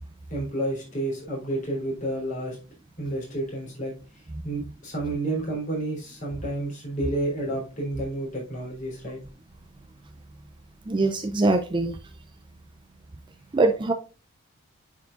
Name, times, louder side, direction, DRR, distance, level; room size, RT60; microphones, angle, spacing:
voice 1, 0.3-2.6 3.0-3.9 4.4-9.2, right 1 dB, 35° left, 3.4 m, -30 dB
voice 2, 10.9-12.0 13.5-13.9, right 2 dB, 20° right, 0.4 m, -22 dB
9.4 x 4.6 x 2.4 m
head